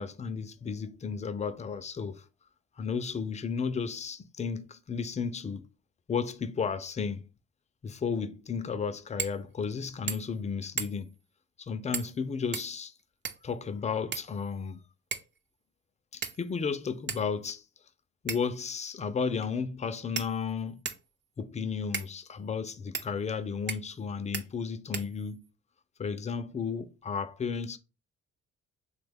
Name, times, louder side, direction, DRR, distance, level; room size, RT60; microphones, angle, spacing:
voice 1, 0.0-2.2 2.8-5.7 6.1-7.3 7.8-11.1 11.6-12.9 13.4-14.8 16.1-17.6 18.2-20.8 21.4-25.5 26.0-27.8, left 5 dB, 25° left, 0.3 m, -33 dB
sound 1, 9.2-9.4 9.7-9.8 10.1-10.4 10.8-11.2 11.9-12.2 12.5-13.5 14.1-14.7 15.1-15.4 16.2-16.6 17.1-17.2 18.3-18.6 19.4-19.5 20.2-21.1 21.9-22.1 22.9-23.1 23.7-24.0 24.3-24.5 24.9-25.5, right 6 dB, 35° right, 0.5 m, -37 dB
3.2 x 2.2 x 3.4 m
cardioid pair, 90°, 30 cm